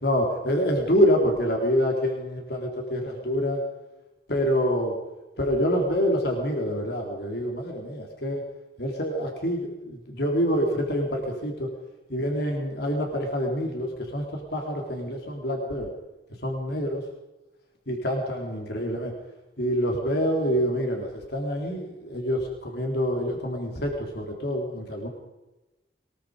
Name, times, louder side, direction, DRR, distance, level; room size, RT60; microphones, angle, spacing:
voice 1, 0.0-3.6 4.3-5.0 5.4-8.4 8.8-11.7 12.1-15.9 16.4-17.0 17.9-19.1 19.6-25.1, equal, 60° left, 1 dB, 4.0 m, -26 dB
23.5 x 21.5 x 5.1 m, 1.0 s
head